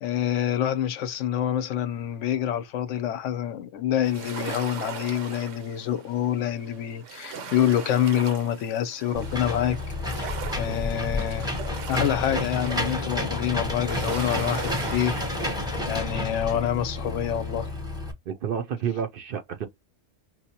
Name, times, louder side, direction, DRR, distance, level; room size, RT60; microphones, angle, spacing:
voice 1, 0.0-9.8 10.1-11.5 11.9-15.6 15.9-17.7, left 10 dB, 90° left, 0.9 m, -27 dB
sound 1, 4.0-15.8, right 7 dB, 80° right, 1.0 m, -40 dB
Engine / Mechanisms, 9.2-18.1, left 2 dB, 5° right, 0.7 m, -30 dB
voice 2, 10.4-11.1 18.3-19.7, right 8 dB, 60° right, 0.6 m, -31 dB
4.4 x 2.0 x 2.8 m
omnidirectional pair, 1.2 m